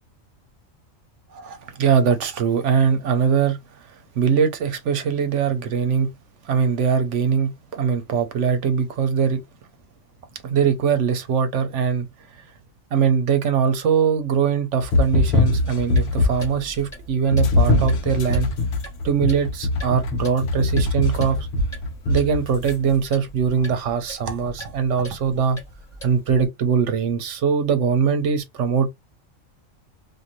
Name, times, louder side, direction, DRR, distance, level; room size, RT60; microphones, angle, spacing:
voice 1, 1.3-3.6 4.2-6.1 6.4-9.4 10.4-12.1 12.4-12.5 12.9-18.5 19.0-21.5 22.1-25.6 26.0-28.9, right 6 dB, 65° right, 0.9 m, -21 dB
sound 1, 14.8-16.6 17.3-22.7, left 2 dB, 70° left, 0.9 m, -22 dB
Clock, 15.9-26.5, equal, 30° left, 1.1 m, -42 dB
2.6 x 2.5 x 2.9 m
omnidirectional pair, 1.4 m